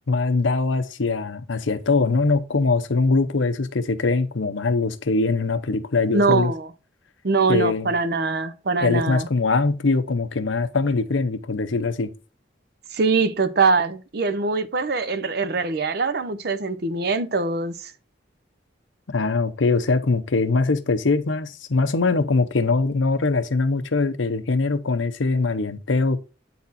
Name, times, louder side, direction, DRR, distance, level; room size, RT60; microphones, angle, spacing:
voice 1, 0.1-6.5 7.5-7.9 8.8-12.1 19.1-26.2, left 3 dB, 90° left, 0.7 m, -22 dB
voice 2, 6.1-6.7 7.2-9.3 12.9-17.9, right 4 dB, 55° right, 0.6 m, -23 dB
8.5 x 4.2 x 4.1 m
head